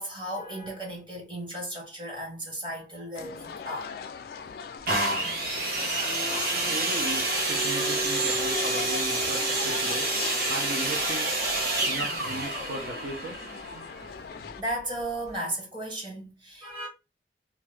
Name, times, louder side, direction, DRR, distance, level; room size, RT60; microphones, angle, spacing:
voice 1, 0.0-4.0 14.4-16.9, right 1 dB, 25° right, 0.9 m, -35 dB
sound 1, 3.1-14.6, left 6 dB, 55° left, 0.3 m, -39 dB
sound 2, 4.9-14.6 15.3-15.4, right 2 dB, 55° right, 0.9 m, -28 dB
voice 2, 6.6-10.1 10.5-11.3 11.8-13.4, right 1 dB, 75° right, 0.7 m, -36 dB
2.7 x 2.3 x 3.2 m
head